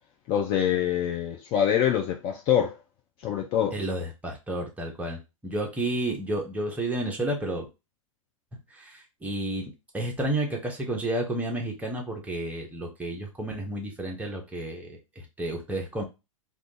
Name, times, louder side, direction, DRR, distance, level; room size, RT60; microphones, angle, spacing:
voice 1, 0.3-2.7 3.2-3.8, left 9 dB, 30° left, 0.5 m, -25 dB
voice 2, 3.7-7.7 8.7-16.0, right 1 dB, 10° right, 0.9 m, -31 dB
2.4 x 2.4 x 3.8 m
figure-of-eight pair, 105°, 17 cm